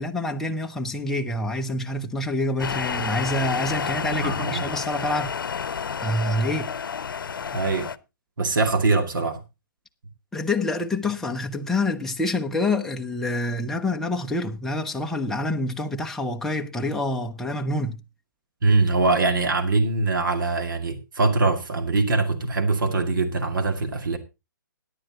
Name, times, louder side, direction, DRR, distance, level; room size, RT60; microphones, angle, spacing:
voice 1, 0.0-5.4 6.0-6.7 10.3-18.0, left 2 dB, 5° left, 0.6 m, -27 dB
sound 1, 2.6-8.0, left 6 dB, 75° left, 0.7 m, -30 dB
voice 2, 4.2-4.7 7.5-7.9 8.4-9.4 18.6-24.2, right 3 dB, 70° right, 2.2 m, -23 dB
17.0 x 9.9 x 2.8 m
hypercardioid pair, 145°, 11 cm